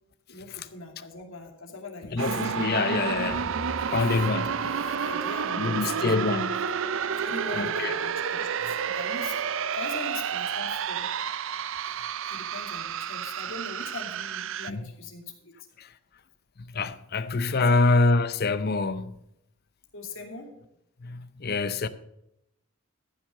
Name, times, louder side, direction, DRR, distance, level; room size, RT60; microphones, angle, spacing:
voice 1, 0.3-2.4 4.8-6.2 7.2-11.1 12.3-15.5 17.5-17.9 19.9-20.5, left 3 dB, 60° left, 2.5 m, -41 dB
voice 2, 2.1-3.4 3.9-4.6 5.6-6.6 7.6-7.9 14.7-14.8 15.8-15.9 16.6-19.1 21.0-21.9, left 3 dB, 45° left, 0.6 m, -25 dB
sound 1, 2.2-14.7, right 7 dB, 60° right, 0.5 m, -30 dB
sound 2, 2.7-5.8, equal, 25° left, 1.0 m, -45 dB
14.0 x 6.3 x 6.5 m
head